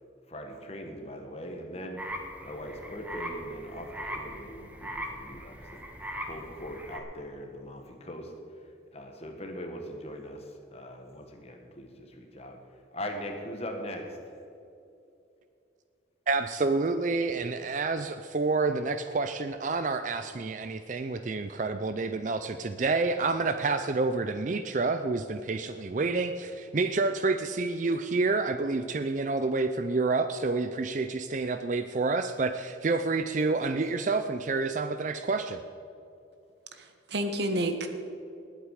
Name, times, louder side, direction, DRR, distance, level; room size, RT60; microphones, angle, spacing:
voice 1, 0.3-14.4, equal, 35° left, 3 dB, 1.5 m, -41 dB
sound 1, 2.0-7.0, equal, 10° right, 1.2 m, -40 dB
voice 2, 16.3-35.6, right 3 dB, 40° right, 9 dB, 0.4 m, -28 dB
voice 3, 36.7-37.9, right 1 dB, 65° right, 6 dB, 1.2 m, -30 dB
20.0 x 8.1 x 4.9 m, 2.7 s
head